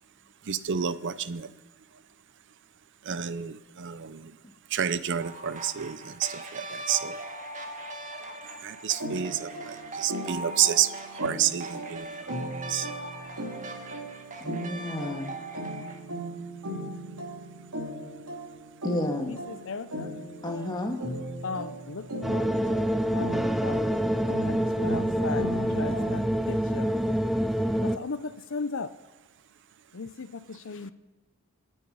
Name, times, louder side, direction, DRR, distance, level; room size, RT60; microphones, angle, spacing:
voice 1, 0.5-1.5 3.1-3.5 3.8-4.0 4.7-6.0 6.5-7.1 8.6-9.4 10.0-10.9 11.2-12.0 12.7-12.8, right 9 dB, 55° right, 15 dB, 0.6 m, -28 dB
sound 1, 5.2-16.0, right 2 dB, 35° right, 1.9 m, -40 dB
sound 2, 9.0-26.4, right 1 dB, 75° right, 3.2 m, -38 dB
voice 2, 14.4-15.3 18.8-19.4 20.4-21.0, left 1 dB, 20° left, 4 dB, 2.0 m, -31 dB
voice 3, 19.3-20.1 21.4-22.6 23.1-25.5 25.7-26.2 26.5-26.9 27.8-28.9 29.9-30.9, left 4 dB, 60° left, 13 dB, 0.7 m, -37 dB
sound 3, 22.2-28.0, equal, ahead, 0.4 m, -26 dB
26.0 x 9.6 x 5.6 m, 1.2 s
head